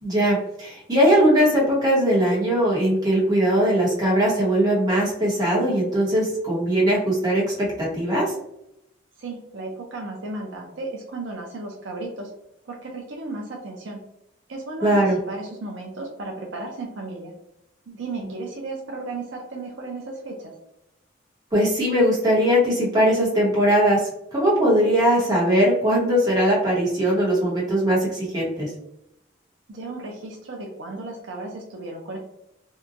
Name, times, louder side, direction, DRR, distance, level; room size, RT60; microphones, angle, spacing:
voice 1, 0.0-8.3 14.8-15.2 21.5-28.7, equal, 20° right, -6 dB, 0.9 m, -20 dB
voice 2, 9.2-12.3 12.7-14.0 14.5-17.3 17.9-20.5 29.7-32.2, right 2 dB, 65° right, 0 dB, 0.5 m, -34 dB
2.7 x 2.2 x 2.5 m, 0.83 s
head